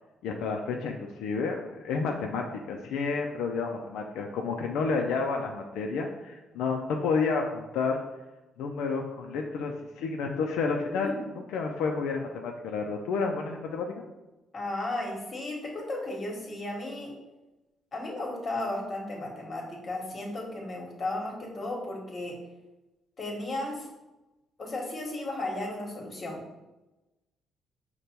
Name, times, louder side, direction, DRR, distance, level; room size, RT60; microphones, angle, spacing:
voice 1, 0.2-8.0 8.6-11.1 11.5-14.1, left 4 dB, 90° left, 2 dB, 0.4 m, -30 dB
voice 2, 14.5-17.1 17.9-22.4 23.2-23.9 24.6-26.6, left 2 dB, 40° left, -1 dB, 1.3 m, -34 dB
5.1 x 2.2 x 4.3 m, 1.0 s
cardioid pair, 90°, 0 cm